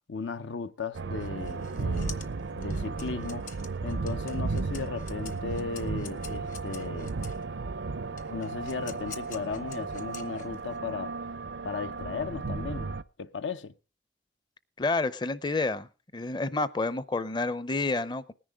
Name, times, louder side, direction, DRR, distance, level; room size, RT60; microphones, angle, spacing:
voice 1, 0.1-2.3 2.5-3.5 3.8-7.1 8.3-11.2 11.6-12.9 13.2-13.7, left 4 dB, 80° left, 0.6 m, -36 dB
sound 1, 0.9-13.0, right 3 dB, 70° right, 0.5 m, -34 dB
sound 2, 1.2-7.4 8.2-10.8, left 8 dB, 45° left, 1.0 m, -47 dB
voice 2, 14.8-18.3, left 3 dB, 25° left, 0.5 m, -29 dB
19.0 x 10.5 x 3.5 m
head